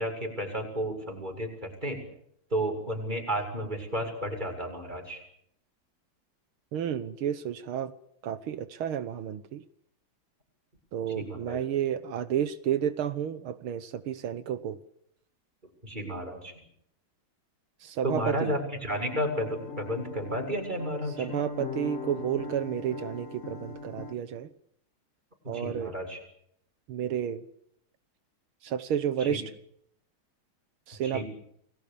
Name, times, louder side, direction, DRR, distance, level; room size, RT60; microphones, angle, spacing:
voice 1, 0.0-2.0 2.5-5.2 11.1-11.6 15.8-16.6 18.0-21.3 25.4-26.2 29.2-29.4 31.0-31.3, equal, 20° right, 5 dB, 7.2 m, -32 dB
voice 2, 6.7-7.9 8.2-9.6 10.9-14.8 17.8-18.6 21.2-24.5 25.5-25.9 26.9-27.4 28.6-29.4 30.9-31.2, right 9 dB, 85° right, 12 dB, 2.1 m, -31 dB
sound 1, 18.9-24.1, left 4 dB, 40° left, 2.0 m, -40 dB
30.0 x 22.0 x 7.0 m, 0.70 s
omnidirectional pair, 2.3 m